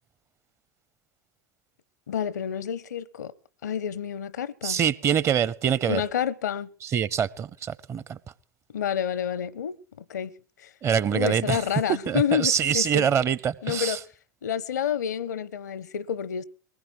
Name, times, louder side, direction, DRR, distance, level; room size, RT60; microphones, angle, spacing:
voice 1, 2.1-3.3 3.6-4.8 5.9-6.7 8.7-10.3 10.6-10.7 11.1-13.1 13.6-14.0 14.4-16.4, left 8 dB, 75° left, 0.7 m, -29 dB
voice 2, 4.6-6.0 6.9-8.2 10.8-11.6 12.1-14.0, right 8 dB, 30° right, 0.7 m, -24 dB
21.5 x 19.5 x 3.1 m
figure-of-eight pair, 85°, 9 cm